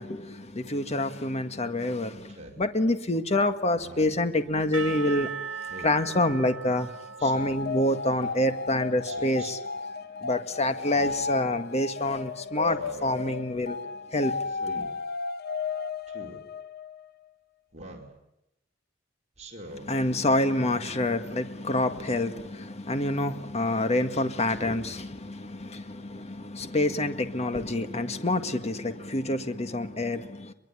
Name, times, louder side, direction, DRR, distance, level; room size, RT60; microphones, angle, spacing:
voice 1, 0.0-5.3 5.8-6.9 7.2-9.6 10.2-13.8 14.1-14.3 19.7-30.5, left 1 dB, 35° left, 8 dB, 1.7 m, -27 dB
Speech synthesizer, 2.3-2.6 3.7-4.3 5.7-6.0 7.2-7.7 9.0-9.5 10.8-11.3 12.6-13.2 14.5-14.9 16.1-16.4 17.7-18.1 19.4-19.9, right 1 dB, 35° right, 4.8 m, -44 dB
Percussion / Church bell, 4.7-9.5, right 6 dB, 75° right, 1.6 m, -39 dB
sound 1, 7.3-17.1, left 4 dB, 55° left, 1.0 m, -34 dB
23.5 x 23.0 x 9.9 m, 0.88 s
head